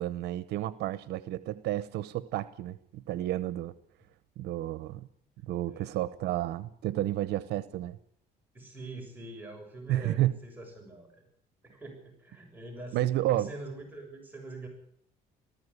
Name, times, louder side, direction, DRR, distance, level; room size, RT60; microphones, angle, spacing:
voice 1, 0.0-3.7 4.4-5.1 5.4-8.0 9.9-10.4 12.9-13.5, right 14 dB, 80° right, 15 dB, 0.9 m, -31 dB
voice 2, 5.7-6.0 8.5-11.2 11.6-13.0 13.3-14.7, right 2 dB, 10° right, 0 dB, 6.8 m, -44 dB
19.0 x 14.5 x 9.8 m, 0.70 s
cardioid pair, 110°, 17 cm